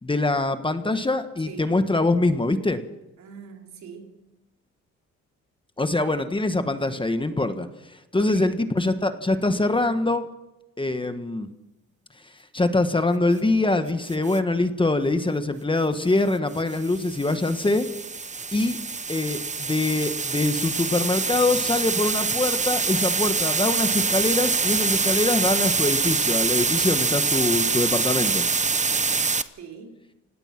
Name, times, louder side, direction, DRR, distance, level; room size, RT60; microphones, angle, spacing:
voice 1, 0.0-2.8 5.8-10.3 10.8-11.5 12.5-17.9 18.5-18.8 19.1-28.4, left 2 dB, 15° left, 1.5 m, -24 dB
voice 2, 3.2-4.3 8.1-8.7 29.6-30.0, right 6 dB, 65° right, 3.8 m, -41 dB
sound 1, 14.1-14.4 16.5-29.4, right 4 dB, 25° right, 1.0 m, -25 dB
29.0 x 17.5 x 6.0 m
cardioid pair, 90°, 30 cm